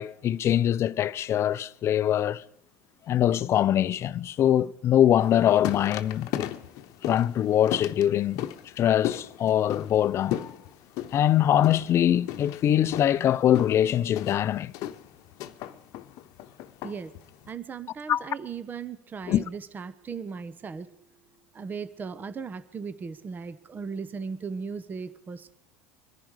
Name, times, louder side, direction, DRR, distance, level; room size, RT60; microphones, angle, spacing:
voice 1, 0.0-2.4 3.1-6.5 7.0-8.5 8.8-10.5 11.1-14.7 18.1-18.2 19.3-19.4, left 11 dB, 45° left, 0.6 m, -23 dB
sound 1, 5.2-17.5, left 12 dB, 60° left, 1.0 m, -37 dB
voice 2, 17.5-20.9 21.5-25.5, right 5 dB, 30° right, 0.9 m, -37 dB
24.5 x 10.5 x 4.9 m
hypercardioid pair, 90°, 7 cm